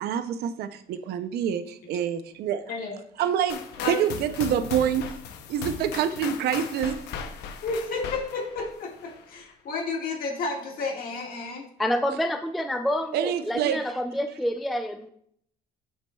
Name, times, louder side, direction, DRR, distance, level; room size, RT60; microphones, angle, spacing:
voice 1, 0.0-2.6 3.2-5.1 5.5-7.0 13.1-13.8, right 9 dB, 70° right, 11 dB, 0.5 m, -26 dB
sound 1, 3.5-9.3, left 6 dB, 85° left, 0.7 m, -38 dB
voice 2, 7.6-11.7, left 3 dB, 60° left, 0 dB, 1.8 m, -31 dB
voice 3, 11.8-15.1, left 1 dB, ahead, 6 dB, 0.3 m, -28 dB
8.2 x 6.1 x 2.3 m, 0.68 s
cardioid pair, 110°, 17 cm